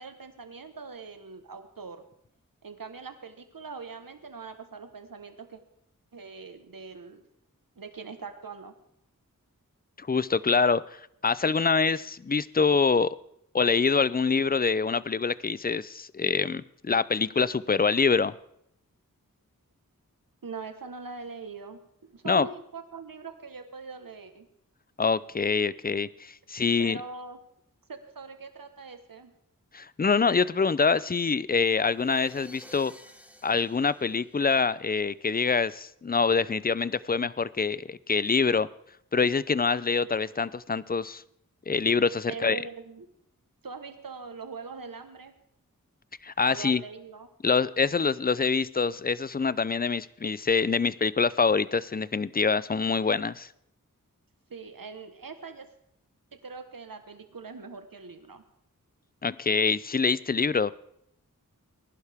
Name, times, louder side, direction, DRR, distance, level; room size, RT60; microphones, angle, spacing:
voice 1, 0.0-2.0 2.6-5.6 6.1-7.2 7.8-8.7 20.4-24.5 26.8-27.4 27.9-29.3 42.2-43.1 43.6-45.3 46.5-47.3 54.5-55.7 56.4-58.4, right 4 dB, 80° right, 8 dB, 1.3 m, -42 dB
voice 2, 10.0-13.2 13.5-18.3 22.2-22.5 25.0-27.0 29.7-32.9 33.4-38.7 39.1-41.2 41.7-42.6 46.2-46.8 47.4-53.5 59.2-60.7, left 5 dB, 30° left, 18 dB, 0.5 m, -25 dB
sound 1, 31.8-35.0, equal, 5° right, 1.2 m, -52 dB
19.5 x 11.5 x 3.5 m, 0.72 s
wide cardioid pair, 50°, 33 cm